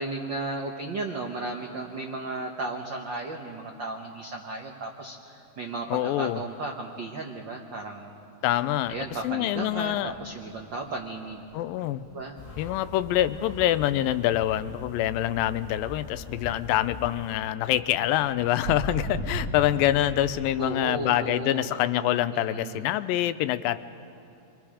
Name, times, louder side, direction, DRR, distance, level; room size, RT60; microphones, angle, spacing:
voice 1, 0.0-8.3 8.9-11.5 12.1-12.4 20.6-21.7 22.3-22.9, right 2 dB, 80° right, 2 dB, 1.0 m, -35 dB
voice 2, 5.9-6.4 8.4-9.0 9.2-10.1 11.5-12.1 12.6-23.8, left 13 dB, 90° left, 13 dB, 2.4 m, -25 dB
sound 1, 8.5-13.9 14.3-20.4, equal, 65° right, 4.5 m, -38 dB
sound 2, 12.4-17.4, left 2 dB, 30° left, 1.8 m, -43 dB
27.5 x 23.5 x 5.0 m, 2.8 s
omnidirectional pair, 3.9 m